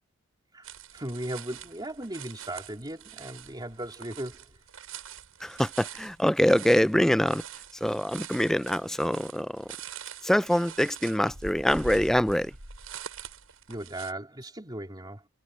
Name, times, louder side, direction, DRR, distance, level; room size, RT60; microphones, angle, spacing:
sound 1, 0.6-14.1, right 6 dB, 80° right, 7.6 m, -44 dB
voice 1, 0.9-4.5 13.7-15.3, right 1 dB, 20° right, 3.6 m, -37 dB
voice 2, 5.4-7.4 7.8-9.6 10.2-12.5, equal, ahead, 0.4 m, -24 dB
head